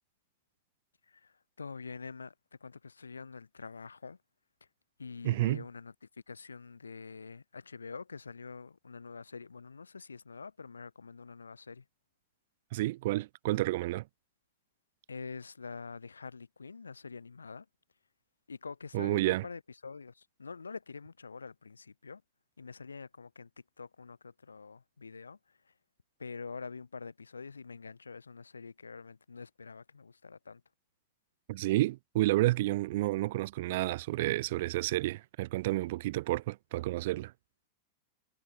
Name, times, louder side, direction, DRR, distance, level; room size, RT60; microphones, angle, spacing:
voice 1, 1.0-2.3 2.6-4.2 5.0-11.9 15.1-17.7 18.5-22.2 22.6-23.5 23.8-25.7 26.2-30.6, left 5 dB, 75° left, 7.0 m, -46 dB
voice 2, 5.2-5.6 12.7-14.0 18.9-19.4 31.5-37.3, right 17 dB, 55° right, 0.9 m, -30 dB
figure-of-eight pair, 90°, 0 cm